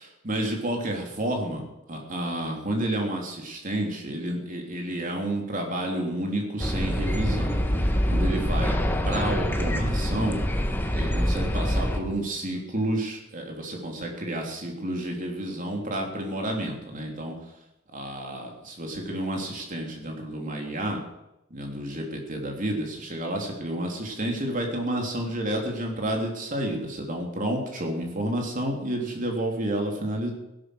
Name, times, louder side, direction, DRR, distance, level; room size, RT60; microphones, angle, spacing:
voice 1, 0.2-7.5 8.1-8.8 9.0-10.4 10.9-17.4 17.9-21.0 21.5-30.3, right 1 dB, 40° right, 1 dB, 3.6 m, -30 dB
sound 1, 6.6-12.0, equal, 10° left, 1.4 m, -25 dB
16.5 x 11.5 x 6.5 m, 0.90 s
head